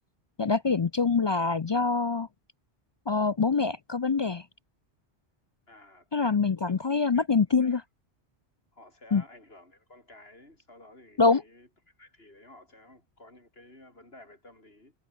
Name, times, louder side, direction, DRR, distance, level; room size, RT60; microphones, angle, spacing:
voice 1, 0.4-2.3 3.1-4.4 6.1-7.8 9.1-9.2 11.2-11.4, left 4 dB, 45° left, 0.3 m, -25 dB
voice 2, 5.7-6.1 6.6-7.3 7.6-7.8 8.7-14.9, left 2 dB, 65° left, 6.6 m, -53 dB
omnidirectional pair, 1.1 m